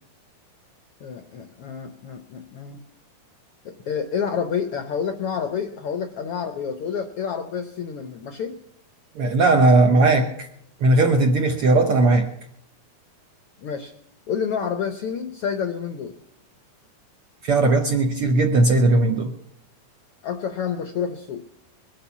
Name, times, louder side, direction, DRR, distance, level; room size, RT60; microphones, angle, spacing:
voice 1, 1.0-2.8 3.6-8.6 13.6-13.9 14.3-16.1 20.2-21.4, left 7 dB, 75° left, 8 dB, 1.3 m, -29 dB
voice 2, 9.1-10.5 10.8-12.3 17.4-19.3, right 2 dB, 70° right, 4 dB, 1.4 m, -18 dB
21.0 x 8.6 x 7.2 m, 0.73 s
omnidirectional pair, 3.7 m